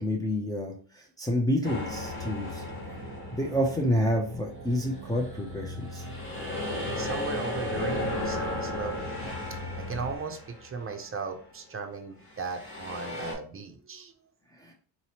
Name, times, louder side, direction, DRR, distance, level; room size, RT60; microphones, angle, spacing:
voice 1, 0.0-2.6 3.3-6.0 14.6-14.7, left 1 dB, 10° left, -2 dB, 0.6 m, -29 dB
sound 1, 1.6-4.1 4.7-11.1 12.3-13.3, left 2 dB, 30° left, 1.6 m, -35 dB
sound 2, 1.9-10.2, equal, 50° right, 1.1 m, -41 dB
voice 2, 7.0-9.2 9.8-14.1, right 5 dB, 30° right, 4 dB, 0.7 m, -37 dB
4.1 x 3.0 x 2.9 m, 0.42 s
cardioid pair, 145°, 42 cm